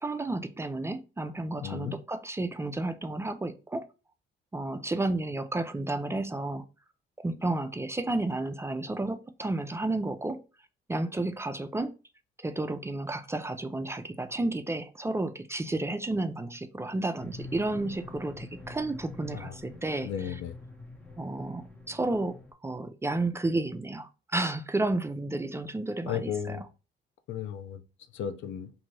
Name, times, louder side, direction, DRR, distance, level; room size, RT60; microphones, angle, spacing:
voice 1, 0.0-3.9 4.5-6.6 7.2-10.4 10.9-11.9 12.4-20.4 21.2-26.6, right 2 dB, 15° right, 0.3 m, -32 dB
voice 2, 1.6-1.9 19.3-19.5 20.0-20.5 26.1-26.6 27.3-27.8 28.1-28.7, left 9 dB, 75° left, 0.5 m, -34 dB
sound 1, 17.2-22.5, left 3 dB, 5° left, 0.7 m, -46 dB
2.6 x 2.6 x 3.1 m
cardioid pair, 90°, 20 cm